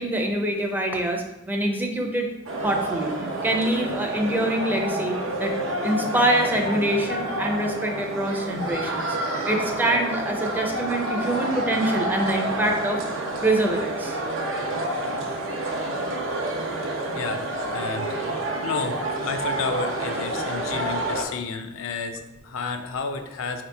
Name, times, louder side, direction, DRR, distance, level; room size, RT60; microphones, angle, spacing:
voice 1, 0.0-2.3 2.6-3.1 3.4-5.5 5.8-9.2 9.5-13.0 13.4-14.2, right 1 dB, 10° right, 2 dB, 0.5 m, -25 dB
sound 1, 2.5-21.2, right 1 dB, 80° right, 0.6 m, -29 dB
voice 2, 17.1-18.2 18.6-23.6, left 4 dB, 85° left, 6 dB, 0.4 m, -31 dB
4.6 x 2.9 x 3.3 m, 0.95 s
head